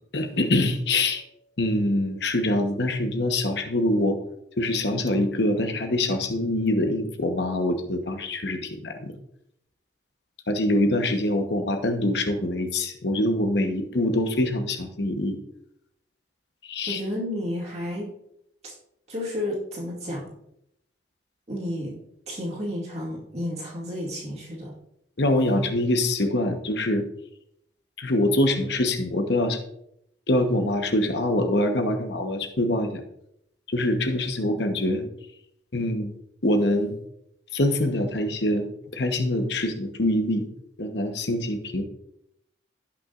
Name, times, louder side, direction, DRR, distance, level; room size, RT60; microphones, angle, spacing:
voice 1, 0.1-1.2 1.6-4.2 4.6-9.1 10.5-15.4 16.6-17.0 25.2-27.0 28.0-29.6 30.3-33.0 33.7-35.1 35.7-36.1 36.4-37.0 37.5-40.4 40.8-41.8, left 1 dB, 65° left, 5 dB, 1.1 m, -24 dB
voice 2, 16.9-18.1 18.6-18.7 19.1-20.2 21.5-22.0 22.3-24.7, left 1 dB, 35° right, -4 dB, 2.3 m, -31 dB
17.0 x 5.9 x 2.5 m, 0.77 s
head